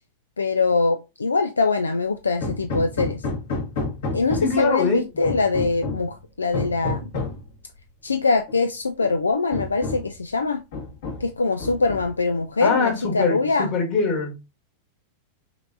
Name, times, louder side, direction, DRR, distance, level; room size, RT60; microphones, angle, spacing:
voice 1, 0.4-3.2 4.1-7.0 8.0-10.6 11.2-13.7, left 4 dB, 75° left, 0.3 m, -23 dB
Hammer, 2.4-4.7 5.2-6.1 6.5-7.4 8.5-8.6 9.0-9.1 9.5-10.2 10.7-11.3 11.6-12.3, left 2 dB, 55° left, 1.6 m, -30 dB
voice 2, 4.4-5.0 12.6-14.4, left 4 dB, 40° left, 1.7 m, -23 dB
5.7 x 3.2 x 2.6 m
figure-of-eight pair, 90°, 0 cm